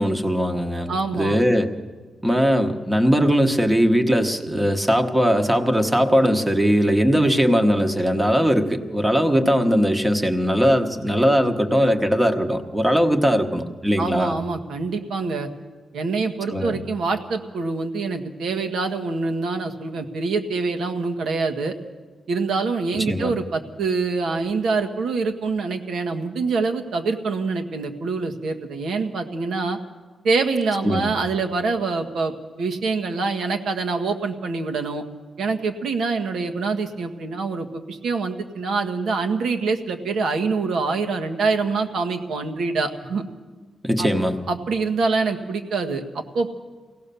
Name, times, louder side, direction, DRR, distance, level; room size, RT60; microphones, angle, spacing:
voice 1, 0.0-1.7 2.2-14.4 16.5-16.8 22.9-23.3 30.8-31.1 43.8-44.4, equal, 10° right, 6 dB, 1.1 m, -20 dB
voice 2, 0.9-1.4 14.0-15.5 15.9-21.8 22.3-29.8 30.2-32.3 32.6-35.0 35.4-43.2 44.0-44.1 44.5-46.5, right 4 dB, 75° right, 6 dB, 1.6 m, -25 dB
24.0 x 17.0 x 6.9 m, 1.4 s
wide cardioid pair, 175°, 0 cm